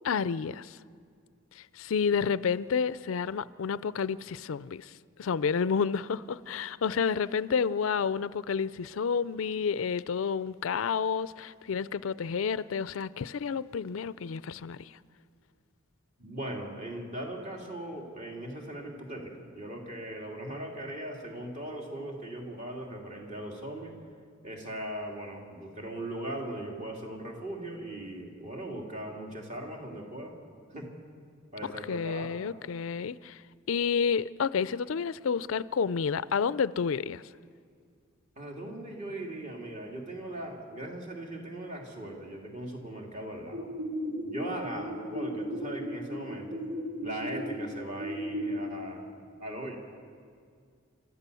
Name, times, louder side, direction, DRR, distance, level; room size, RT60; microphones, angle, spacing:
voice 1, 0.0-0.8 1.6-4.9 5.2-14.9 31.9-33.4 33.7-37.2, left 6 dB, 80° left, 0.4 m, -30 dB
voice 2, 16.2-23.9 24.4-30.3 30.7-30.9 31.5-32.4 38.4-43.7 44.2-46.7 47.0-49.1 49.4-49.8, right 1 dB, 35° right, 3.0 m, -39 dB
sound 1, 43.5-48.5, equal, 65° right, 3.0 m, -36 dB
30.0 x 13.5 x 6.9 m
head